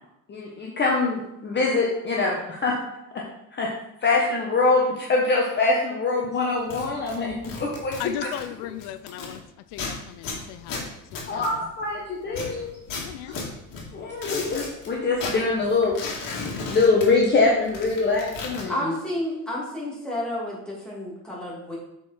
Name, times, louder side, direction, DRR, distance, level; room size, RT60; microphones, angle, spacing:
voice 1, 0.3-2.7 3.5-3.7 4.0-7.3 7.6-8.0 8.2-8.3 11.3-12.7 13.3-13.4 13.9-15.9 16.6-18.9, left 3 dB, 25° left, -2 dB, 1.0 m, -23 dB
sound 1, 6.6-9.4 9.7-11.9 12.3-14.9 15.1-17.4 17.6-18.6, left 3 dB, 55° left, 2.1 m, -35 dB
voice 2, 8.0-9.4 9.7-10.8 11.1-11.6 12.3-12.4 13.0-13.4, left 13 dB, 90° left, 12 dB, 0.5 m, -37 dB
voice 3, 18.7-21.8, left 1 dB, ahead, -6 dB, 2.5 m, -30 dB
7.1 x 4.7 x 4.4 m, 0.84 s
cardioid pair, 135°, 39 cm